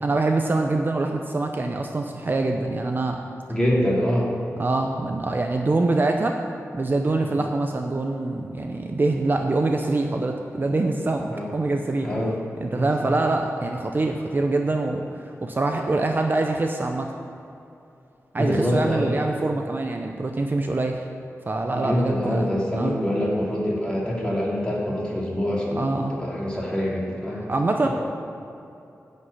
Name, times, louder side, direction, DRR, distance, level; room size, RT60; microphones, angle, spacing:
voice 1, 0.0-3.2 4.6-6.4 6.7-12.1 12.6-15.0 15.4-17.1 18.3-21.0 21.5-22.5 22.8-22.9 25.8-26.1 27.5-27.9, right 2 dB, 35° right, 3 dB, 0.6 m, -24 dB
voice 2, 3.5-4.3 7.2-7.3 11.3-11.5 12.0-12.4 12.7-13.1 18.4-19.2 21.7-27.4, equal, 15° left, -5 dB, 2.5 m, -25 dB
9.7 x 5.4 x 8.3 m, 2.7 s
wide cardioid pair, 115°, 6 cm